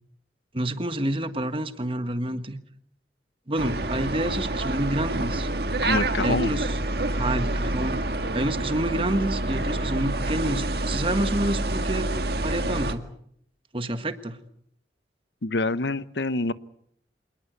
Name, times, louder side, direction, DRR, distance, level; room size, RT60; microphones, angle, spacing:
voice 1, 0.5-2.6 3.5-5.5 6.2-6.8 7.1-8.0 8.3-12.1 12.4-13.0 13.7-14.4, right 1 dB, 30° right, 10 dB, 1.5 m, -28 dB
sound 1, 3.6-12.9, right 1 dB, 65° right, 1.8 m, -27 dB
voice 2, 5.8-6.5 15.4-16.5, left 2 dB, 80° left, 15 dB, 0.9 m, -26 dB
27.0 x 19.5 x 8.0 m, 0.69 s
head